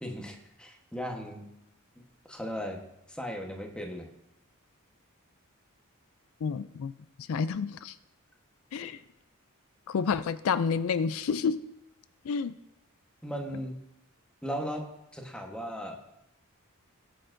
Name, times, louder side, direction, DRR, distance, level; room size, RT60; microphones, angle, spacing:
voice 1, 0.0-1.5 2.3-2.8 3.1-4.1 8.8-8.9 13.2-13.7 14.4-14.8 15.1-16.0, equal, 5° left, 2 dB, 1.1 m, -37 dB
voice 2, 6.4-6.9 7.2-8.0 8.7-9.0 9.9-11.6 12.2-12.6, left 6 dB, 70° left, 14 dB, 0.4 m, -29 dB
19.5 x 6.5 x 2.6 m, 0.85 s
head